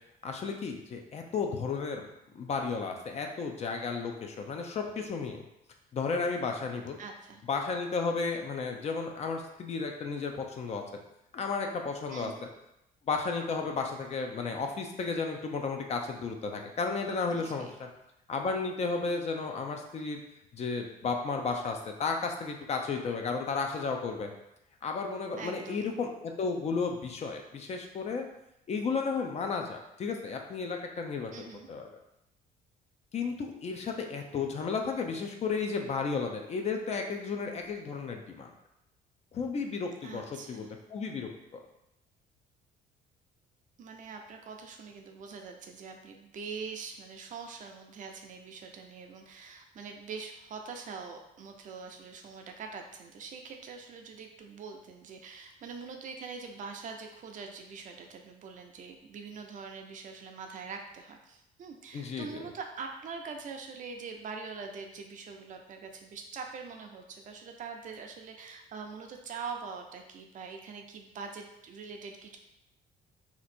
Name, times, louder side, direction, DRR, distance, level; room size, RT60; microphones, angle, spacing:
voice 1, 0.2-2.1 2.3-5.4 5.9-7.0 7.5-10.8 11.3-12.3 13.1-17.9 18.3-20.2 20.5-24.3 24.8-28.3 28.7-31.8 33.1-38.5 39.3-41.3 61.9-62.4, left 4 dB, 40° left, 3 dB, 0.5 m, -33 dB
voice 2, 7.0-7.4 12.1-12.4 17.3-17.7 25.4-25.9 31.3-31.7 40.0-40.7 43.8-72.4, right 5 dB, 50° right, 3 dB, 0.5 m, -43 dB
2.9 x 2.5 x 4.2 m, 0.85 s
cardioid pair, 110°, 17 cm